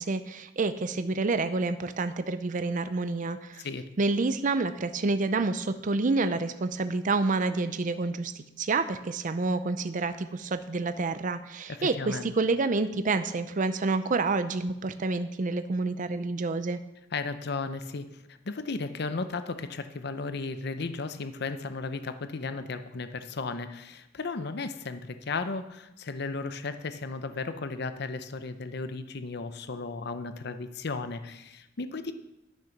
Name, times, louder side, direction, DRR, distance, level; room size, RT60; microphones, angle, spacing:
voice 1, 0.0-3.6 4.0-16.8, right 3 dB, 45° right, 11 dB, 0.5 m, -28 dB
voice 2, 11.7-12.3 17.1-32.1, left 3 dB, 60° left, 10 dB, 0.7 m, -35 dB
12.0 x 6.6 x 5.9 m, 0.91 s
head